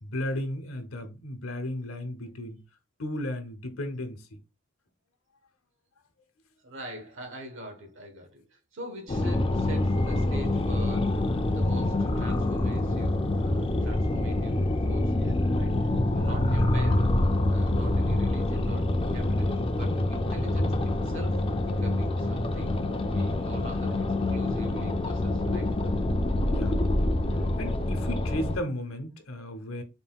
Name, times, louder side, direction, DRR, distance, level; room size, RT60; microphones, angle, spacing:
voice 1, 0.0-2.6 3.0-4.3 16.5-17.1 26.5-27.1 27.6-29.8, left 1 dB, 80° left, 0.9 m, -35 dB
voice 2, 6.6-11.2 11.5-15.8 16.1-17.0 17.5-25.7, equal, 65° right, 1.2 m, -43 dB
sound 1, 9.1-28.6, left 1 dB, 25° left, 0.4 m, -26 dB
4.1 x 3.8 x 2.3 m
head